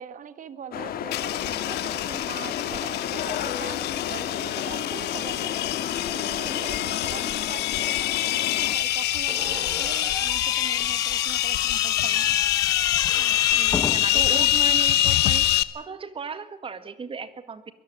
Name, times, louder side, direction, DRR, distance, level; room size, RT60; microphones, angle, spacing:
voice 1, 0.0-3.8 4.1-5.7 6.1-12.3 13.1-14.5, right 8 dB, 50° right, 13 dB, 1.5 m, -41 dB
sound 1, 0.7-8.8, left 9 dB, 60° left, 1.8 m, -32 dB
sound 2, 1.1-15.6, left 14 dB, 80° left, 1.0 m, -25 dB
Slam / Squeak, 9.3-14.3, left 4 dB, 20° left, 1.1 m, -33 dB
voice 2, 13.9-17.6, right 5 dB, 30° right, 11 dB, 1.9 m, -36 dB
22.5 x 14.0 x 8.9 m, 0.88 s
cardioid pair, 110°, 17 cm